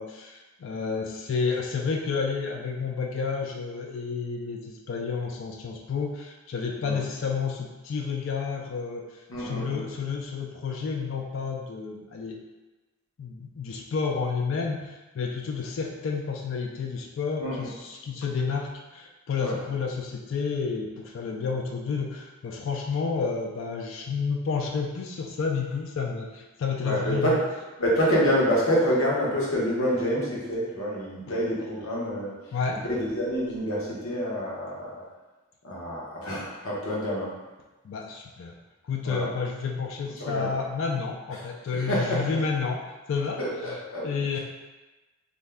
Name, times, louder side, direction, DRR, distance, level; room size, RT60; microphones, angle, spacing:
voice 1, 0.0-12.4 13.2-27.4 32.5-32.8 37.8-38.5 38.8-42.8 43.1-43.4 43.7-43.8 44.0-44.4, left 5 dB, 65° left, 1 dB, 0.3 m, -30 dB
voice 2, 9.3-9.8 17.4-17.7 19.4-19.6 26.8-27.4 27.8-32.3 32.9-35.0 35.6-37.3 39.0-39.3 40.2-40.5 41.7-42.2 43.4-44.1, equal, 85° left, -5 dB, 0.9 m, -27 dB
2.6 x 2.2 x 3.3 m, 1.1 s
head